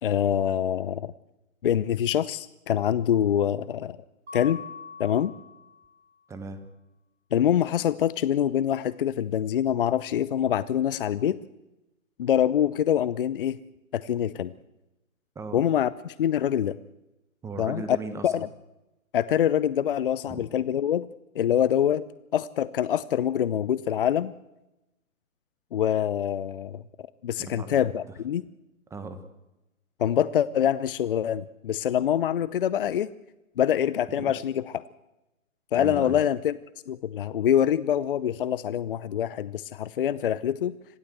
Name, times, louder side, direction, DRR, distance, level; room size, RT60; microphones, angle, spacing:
voice 1, 0.0-1.1 1.6-4.0 4.3-4.6 5.0-5.3 7.3-11.4 12.2-13.6 13.9-14.5 15.5-16.8 17.6-17.8 18.2-18.5 19.1-21.1 21.3-22.0 22.3-24.3 25.7-26.8 27.2-28.4 30.0-33.1 33.6-34.8 35.7-36.6 36.9-40.7, left 10 dB, 40° left, 17 dB, 0.7 m, -25 dB
Mallet percussion, 4.3-6.1, left 5 dB, 50° right, 4.5 m, -43 dB
voice 2, 6.3-6.6 15.3-15.6 17.4-18.3 20.3-20.5 27.4-27.9 28.9-29.2 34.1-34.3 35.7-36.2, right 3 dB, 5° right, 10 dB, 1.3 m, -37 dB
26.0 x 17.0 x 8.0 m, 0.98 s
figure-of-eight pair, 135°, 42 cm